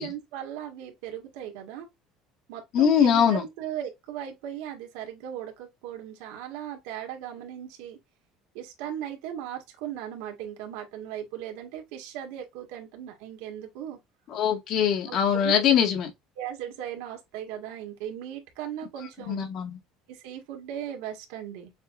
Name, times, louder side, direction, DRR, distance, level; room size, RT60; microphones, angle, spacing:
voice 1, 0.0-1.9 2.5-8.0 8.5-14.0 15.1-15.5 16.4-19.5 20.1-21.7, right 10 dB, 85° right, 1.8 m, -37 dB
voice 2, 2.7-3.4 14.3-16.1 19.3-19.8, left 8 dB, 50° left, 1.9 m, -22 dB
6.6 x 2.8 x 2.6 m
cardioid pair, 150°, 0 cm